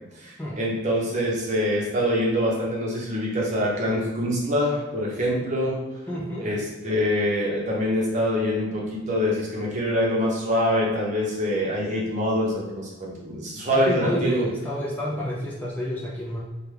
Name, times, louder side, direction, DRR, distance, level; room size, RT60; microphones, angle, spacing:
voice 1, 0.1-5.8 6.4-14.4, equal, 35° right, -3 dB, 0.7 m, -25 dB
voice 2, 6.1-6.5 13.7-16.4, equal, 10° left, -6 dB, 0.4 m, -29 dB
3.3 x 2.2 x 3.2 m, 1.2 s
head